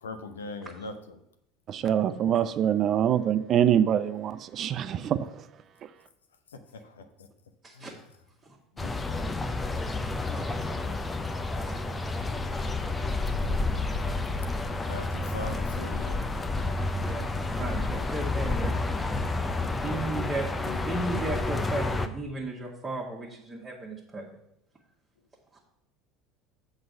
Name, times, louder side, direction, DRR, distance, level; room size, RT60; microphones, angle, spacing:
voice 1, 0.0-1.2 2.0-2.1 2.4-2.5 6.5-7.1 7.7-7.9 8.7-8.9 14.3-14.4 14.8-16.3 20.7-20.8, left 3 dB, 80° left, 9 dB, 0.7 m, -40 dB
voice 2, 1.7-5.3, right 9 dB, 45° right, 13 dB, 0.5 m, -24 dB
sound 1, 8.8-22.1, left 2 dB, 15° left, 0.6 m, -30 dB
voice 3, 10.2-10.5 11.5-11.8 13.3-13.4 16.8-17.2 17.5-18.7 19.8-24.2 25.5-25.6, right 2 dB, 25° right, -4 dB, 1.6 m, -35 dB
7.6 x 4.1 x 6.7 m, 0.80 s
figure-of-eight pair, 70°, 0 cm